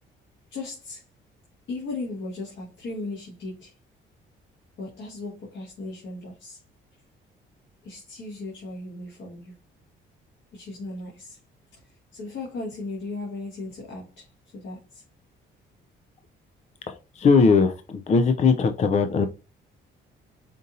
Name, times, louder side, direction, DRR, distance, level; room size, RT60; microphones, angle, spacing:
voice 1, 0.5-1.0 1.7-3.8 4.8-6.6 7.8-9.5 10.5-11.4 11.7-15.0, left 2 dB, 70° left, -4 dB, 1.6 m, -37 dB
voice 2, 16.9-19.3, left 4 dB, 35° left, 7 dB, 0.4 m, -20 dB
5.1 x 2.7 x 2.6 m, 0.32 s
cardioid pair, 90°, 20 cm